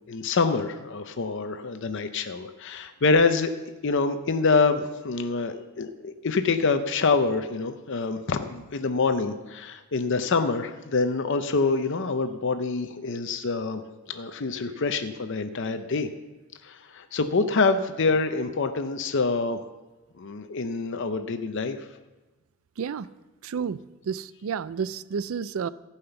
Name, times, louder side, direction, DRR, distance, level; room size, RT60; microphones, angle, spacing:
voice 1, 0.1-3.5 3.8-13.8 14.1-16.1 16.6-19.6 20.2-21.8, left 4 dB, 60° left, 8 dB, 0.6 m, -26 dB
voice 2, 22.8-23.1 23.4-23.8 24.0-25.7, right 6 dB, 75° right, 17 dB, 0.4 m, -30 dB
15.0 x 5.7 x 6.9 m, 1.1 s
head